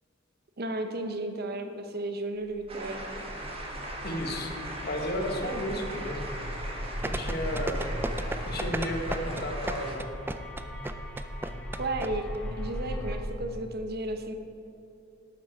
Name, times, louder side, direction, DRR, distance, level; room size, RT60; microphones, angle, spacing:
voice 1, 0.6-3.1 11.8-14.3, right 2 dB, 50° right, 6 dB, 0.9 m, -33 dB
sound 1, 2.5-13.2, equal, 5° left, 1.6 m, -38 dB
sound 2, 2.7-10.0, right 1 dB, 30° right, 1.4 m, -40 dB
voice 2, 4.0-4.5 4.8-6.2 7.0-7.9 8.5-10.1, equal, 55° left, 3 dB, 1.4 m, -33 dB
sound 3, 7.0-12.1 12.3-12.4, right 2 dB, 10° right, 0.3 m, -33 dB
12.0 x 8.5 x 4.5 m, 2.7 s
head